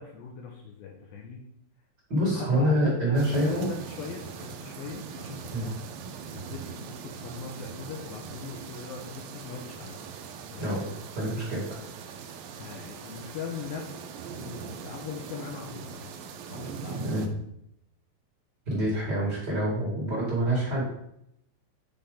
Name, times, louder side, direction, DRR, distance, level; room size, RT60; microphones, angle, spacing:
voice 1, 0.0-1.4 2.3-5.8 6.3-10.0 10.5-11.3 12.5-16.1 16.5-17.2, left 5 dB, 80° left, 1 dB, 2.3 m, -40 dB
voice 2, 2.1-3.7 5.5-5.7 10.6-10.8 11.1-11.8 17.0-17.2 18.7-20.8, right 1 dB, 45° right, -5 dB, 1.4 m, -26 dB
sound 1, 3.2-17.3, right 6 dB, 90° right, 1.9 m, -41 dB
8.7 x 4.2 x 3.7 m, 0.76 s
omnidirectional pair, 4.9 m